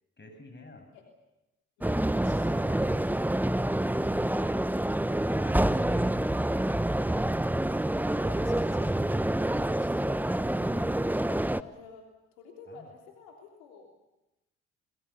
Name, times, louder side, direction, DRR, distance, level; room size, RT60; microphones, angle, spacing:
voice 1, 0.2-0.9 5.4-6.7 12.7-12.9, left 2 dB, 35° left, 6 dB, 7.3 m, -50 dB
voice 2, 1.8-3.5 8.1-12.1 12.3-14.0, left 4 dB, 85° left, 1 dB, 3.4 m, -50 dB
sound 1, 1.8-11.6, right 1 dB, 5° right, 0.9 m, -27 dB
25.0 x 22.5 x 7.1 m, 0.95 s
hypercardioid pair, 45°, 33 cm